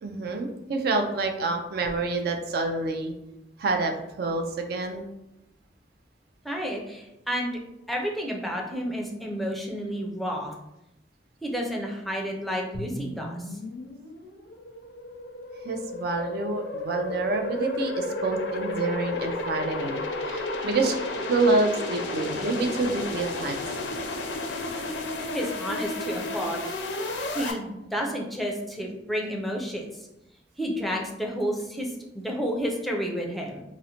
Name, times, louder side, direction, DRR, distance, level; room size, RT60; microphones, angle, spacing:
voice 1, 0.0-3.1 3.6-5.0 15.6-21.0 21.3-23.6 23.9-24.0, right 3 dB, 60° right, 4 dB, 0.4 m, -27 dB
voice 2, 6.4-7.6 7.9-10.5 11.4-13.4 25.3-26.6 27.3-30.1 30.6-33.6, equal, ahead, -1 dB, 0.5 m, -31 dB
sound 1, 12.7-27.5, left 2 dB, 80° left, 0.5 m, -32 dB
3.8 x 2.1 x 2.8 m, 0.90 s
head